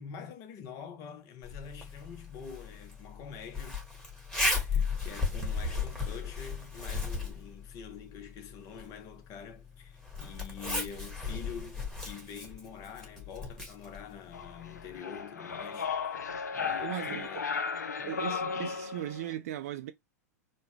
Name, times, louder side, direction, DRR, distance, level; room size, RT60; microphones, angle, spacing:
voice 1, 0.0-3.8 4.6-15.9 16.5-17.5 18.0-18.3, left 7 dB, 40° left, 0.8 m, -46 dB
Zipper (clothing), 1.4-15.0, left 3 dB, 5° left, 1.4 m, -36 dB
sound 1, 14.3-19.3, left 5 dB, 80° left, 0.5 m, -35 dB
voice 2, 16.8-17.4 18.1-19.9, right 12 dB, 60° right, 0.4 m, -38 dB
3.8 x 2.2 x 3.1 m
figure-of-eight pair, 95°, 9 cm